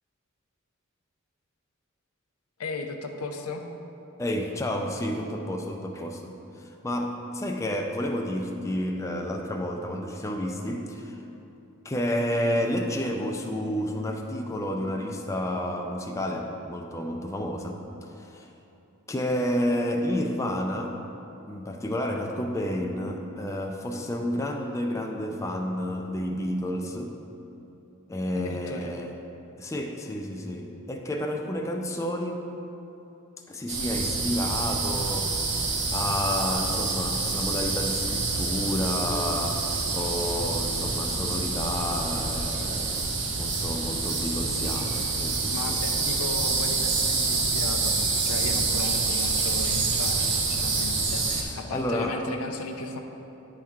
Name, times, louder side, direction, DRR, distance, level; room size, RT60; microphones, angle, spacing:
voice 1, 2.6-3.7 28.3-28.9 45.5-48.0 48.2-53.0, left 3 dB, 80° left, 4 dB, 0.6 m, -36 dB
voice 2, 4.2-11.2 11.8-18.5 19.1-21.0 21.5-27.2 28.1-29.1 29.6-32.5 33.5-45.8 51.4-52.2, left 1 dB, 15° left, 1 dB, 0.4 m, -30 dB
sound 1, 33.7-51.4, right 3 dB, 55° right, 0.9 m, -27 dB
10.5 x 4.4 x 3.6 m, 2.9 s
head